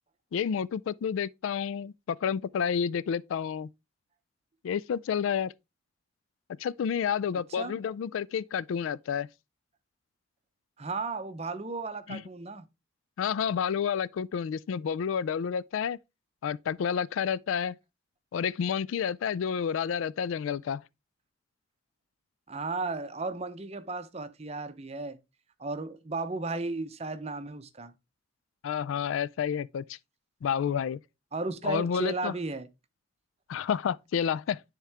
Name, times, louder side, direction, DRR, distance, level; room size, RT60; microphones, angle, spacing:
voice 1, 0.3-3.7 4.6-5.5 6.6-9.3 12.1-12.2 13.2-16.0 16.4-17.8 18.3-20.8 28.6-30.0 30.4-31.0 31.6-32.3 33.5-34.6, left 7 dB, 80° left, 0.3 m, -30 dB
voice 2, 10.8-12.7 22.5-25.2 25.6-27.9 31.3-32.7, right 3 dB, 30° right, 0.6 m, -34 dB
10.0 x 3.6 x 3.4 m
head